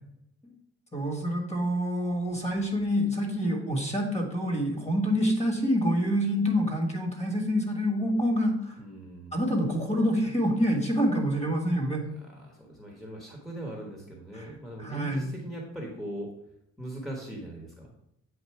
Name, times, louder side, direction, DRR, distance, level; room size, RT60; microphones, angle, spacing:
voice 1, 0.9-8.8 9.3-12.0 14.3-15.3, equal, 20° left, 2 dB, 1.6 m, -27 dB
voice 2, 8.8-9.4 12.3-16.3 16.8-17.9, right 1 dB, ahead, -1 dB, 1.1 m, -40 dB
8.0 x 2.7 x 4.6 m, 0.79 s
cardioid pair, 90°, 30 cm